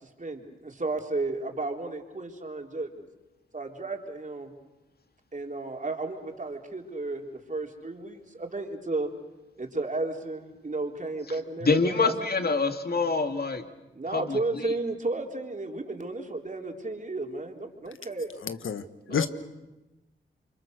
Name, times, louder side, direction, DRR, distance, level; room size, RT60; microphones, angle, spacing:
voice 1, 0.0-3.1 3.5-4.5 5.3-9.1 9.6-12.1 13.9-18.3 19.1-19.3, right 2 dB, 40° right, 3.9 m, -33 dB
voice 2, 11.6-13.7 14.1-14.7 19.1-19.3, left 4 dB, 50° left, 2.4 m, -26 dB
voice 3, 18.4-18.8 19.1-19.3, left 7 dB, 75° left, 1.5 m, -29 dB
29.0 x 25.0 x 6.7 m
cardioid pair, 55°, 21 cm